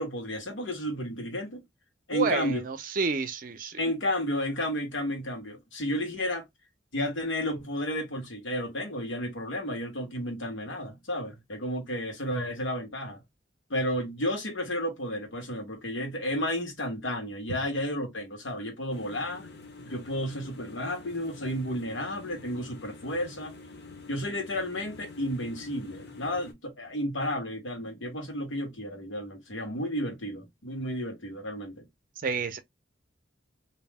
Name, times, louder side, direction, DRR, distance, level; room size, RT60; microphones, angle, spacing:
voice 1, 0.0-1.6 2.1-2.6 3.8-6.4 6.9-13.2 13.7-19.5 19.8-23.5 24.1-31.8, equal, 85° left, 1.2 m, -32 dB
voice 2, 2.1-3.8 32.2-32.6, right 4 dB, 45° right, 0.5 m, -30 dB
sound 1, 18.9-26.5, left 3 dB, 60° left, 0.8 m, -47 dB
2.7 x 2.0 x 3.4 m
head